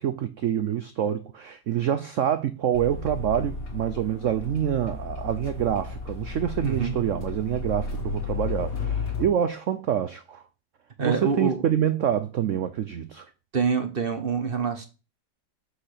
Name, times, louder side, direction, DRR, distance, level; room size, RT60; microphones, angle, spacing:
voice 1, 0.0-10.4 11.0-13.3, right 9 dB, 85° right, 0.6 m, -26 dB
sound 1, 2.7-9.3, left 4 dB, 60° left, 2.2 m, -33 dB
voice 2, 6.6-6.9 11.0-11.6 13.5-14.9, right 5 dB, 40° right, 0.9 m, -26 dB
6.1 x 4.9 x 6.5 m
omnidirectional pair, 2.0 m